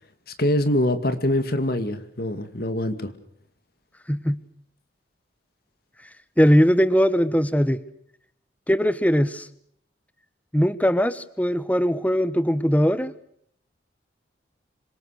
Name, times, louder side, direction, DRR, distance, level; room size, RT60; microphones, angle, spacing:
voice 1, 0.4-3.1, left 1 dB, 50° left, 9 dB, 2.3 m, -24 dB
voice 2, 4.1-4.4 6.4-7.8 8.7-9.5 10.5-13.1, equal, 10° left, 14 dB, 1.2 m, -20 dB
27.0 x 24.5 x 6.6 m, 0.68 s
head